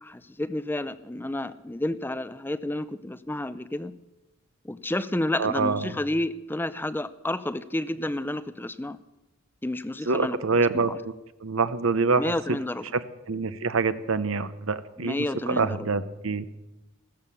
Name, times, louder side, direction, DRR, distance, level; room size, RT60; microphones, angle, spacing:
voice 1, 0.0-3.9 4.6-9.0 9.6-11.0 12.2-12.9 15.0-15.9, left 1 dB, 10° left, 13 dB, 0.5 m, -30 dB
voice 2, 5.4-6.0 10.1-11.1 11.4-12.6 12.9-16.5, right 4 dB, 75° right, 13 dB, 0.8 m, -26 dB
14.5 x 13.5 x 6.9 m, 1.0 s
head